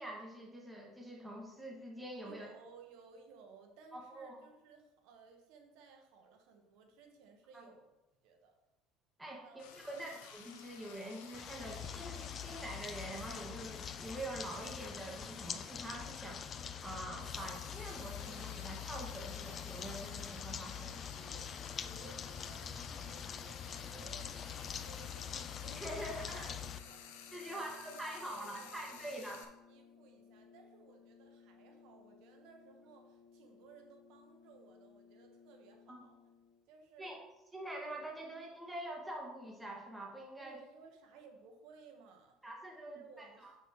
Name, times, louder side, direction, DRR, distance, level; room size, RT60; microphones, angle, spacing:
voice 1, 0.0-2.5 3.9-4.4 7.5-7.6 9.2-21.0 25.6-26.5 27.3-29.4 35.9-36.0 37.0-37.2 37.5-40.6 42.4-43.5, right 1 dB, 10° right, -2 dB, 1.9 m, -45 dB
voice 2, 2.2-8.0 8.2-8.6 9.4-10.1 21.1-25.5 25.9-26.2 26.6-29.4 29.7-36.2 36.7-37.2 40.4-42.4 42.8-43.6, right 5 dB, 75° right, 4 dB, 1.4 m, -59 dB
Frying (food), 9.6-29.4, left 8 dB, 90° left, 1.0 m, -54 dB
sound 1, 11.3-26.8, left 8 dB, 35° left, 0.5 m, -44 dB
sound 2, 21.5-36.7, left 5 dB, 55° left, 1.6 m, -62 dB
8.7 x 6.4 x 3.2 m, 0.99 s
supercardioid pair, 110°, 0 cm